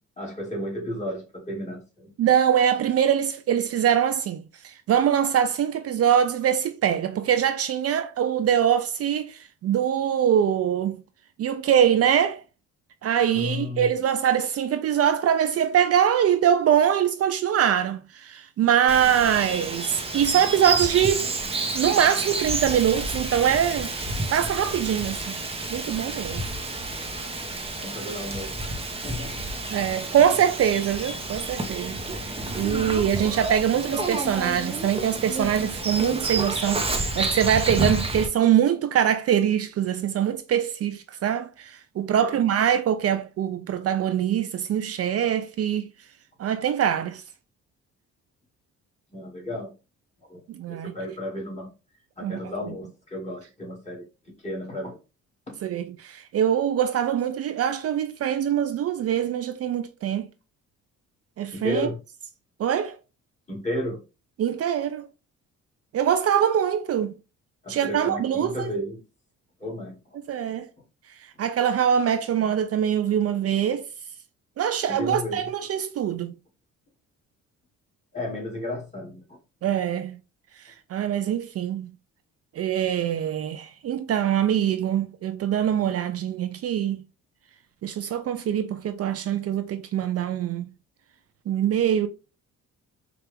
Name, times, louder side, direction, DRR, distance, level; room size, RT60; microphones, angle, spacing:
voice 1, 0.2-2.1 13.3-14.0 27.8-28.5 29.0-29.4 42.2-42.4 49.1-49.8 50.3-50.4 50.7-51.7 52.2-54.1 54.4-55.0 55.5-55.6 61.5-62.0 63.5-64.0 67.6-69.0 69.6-70.0 74.9-75.4 78.1-79.7 85.8-86.0, left 1 dB, 25° left, 2.2 m, -33 dB
voice 2, 2.2-11.0 11.4-12.4 13.0-21.3 21.7-23.9 24.3-25.4 25.7-26.4 29.7-45.9 46.4-47.2 50.5-50.9 52.2-52.4 55.6-60.3 61.4-61.9 62.6-63.0 64.4-65.1 65.9-67.2 67.7-68.7 70.3-70.7 71.4-73.9 74.6-76.3 79.6-80.2 80.6-81.9 82.6-87.0 87.8-90.6 91.5-92.1, right 9 dB, 50° right, 0.5 m, -23 dB
Bird vocalization bird call bird song, 18.9-38.3, right 2 dB, 20° right, 0.8 m, -30 dB
4.4 x 2.4 x 3.3 m
cardioid pair, 90°, 30 cm